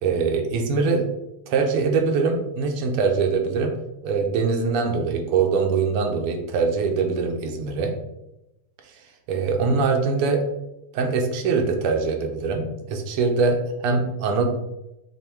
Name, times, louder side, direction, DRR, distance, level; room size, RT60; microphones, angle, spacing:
voice 1, 0.0-1.1 1.5-3.7 4.0-8.0 9.3-10.4 10.9-14.5, right 4 dB, 90° right, 3 dB, 1.7 m, -23 dB
5.6 x 2.1 x 4.4 m, 0.91 s
omnidirectional pair, 2.4 m